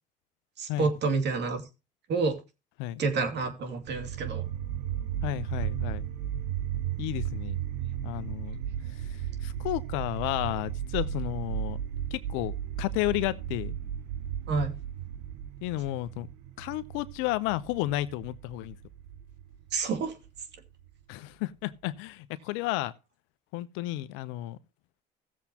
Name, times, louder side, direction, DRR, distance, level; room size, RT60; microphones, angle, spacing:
voice 1, 0.6-1.6 2.1-2.4 3.0-4.5 14.5-14.7 19.7-20.1, right 4 dB, 60° right, 2.6 m, -28 dB
sound 1, 3.8-20.9, right 10 dB, 80° right, 0.7 m, -35 dB
voice 2, 5.2-6.1 7.0-7.6 8.0-8.6 9.4-11.8 12.1-12.5 12.8-13.8 15.6-16.3 16.6-18.8 21.1-22.9 23.5-24.6, left 17 dB, 80° left, 0.8 m, -32 dB
16.5 x 7.3 x 2.9 m
hypercardioid pair, 65°, 20 cm